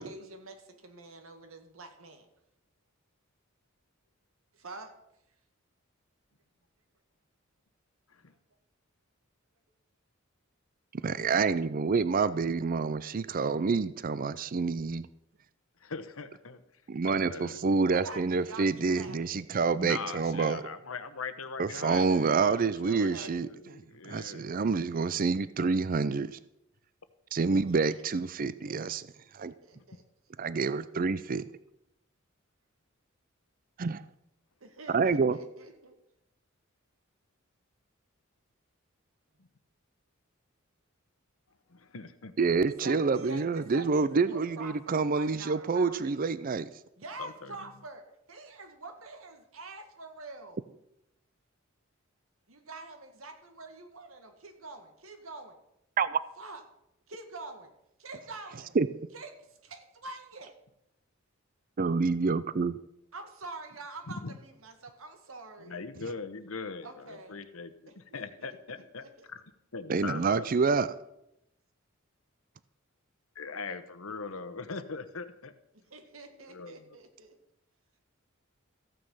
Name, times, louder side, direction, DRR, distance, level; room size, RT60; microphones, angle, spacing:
voice 1, 0.0-2.3 4.5-4.9 17.9-19.4 22.9-23.4 27.5-27.8 28.6-29.3 29.6-30.0 34.6-36.0 42.8-46.2 47.0-48.0 48.3-50.6 52.5-55.6 56.4-56.6 57.1-57.7 58.0-58.7 59.1-60.5 63.1-65.8 66.8-67.4 67.9-69.3 75.7-77.4, right 3 dB, 80° right, 2.0 m, -46 dB
voice 2, 10.9-15.1 16.9-20.7 21.6-23.5 24.0-26.4 27.3-29.0 29.3-29.5 30.4-31.4 33.8-34.1 34.9-35.4 42.4-46.7 56.0-56.2 58.8-58.9 61.8-62.8 69.9-70.9, right 4 dB, 40° right, 0.5 m, -27 dB
voice 3, 15.8-16.6 17.2-17.6 19.8-24.5 41.7-42.3 47.2-47.5 64.1-64.3 65.6-69.4 69.7-70.5 73.3-75.5 76.5-76.8, left 4 dB, 85° left, 1.1 m, -41 dB
14.5 x 9.1 x 5.6 m
head